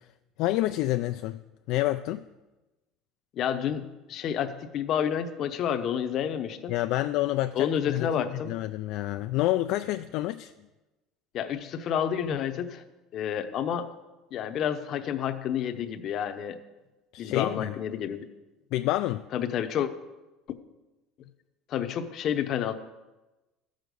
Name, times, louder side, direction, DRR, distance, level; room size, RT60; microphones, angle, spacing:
voice 1, 0.4-1.4 1.7-2.2 6.7-10.5 17.1-17.7 18.7-19.2, left 15 dB, 55° left, 9 dB, 0.3 m, -28 dB
voice 2, 3.3-6.8 7.5-8.5 11.3-12.8 13.1-13.9 14.3-16.6 17.2-18.2 19.3-19.9 21.7-22.7, left 9 dB, 40° left, 9 dB, 0.8 m, -29 dB
14.0 x 6.4 x 5.2 m, 1.1 s
cardioid pair, 160°, 0 cm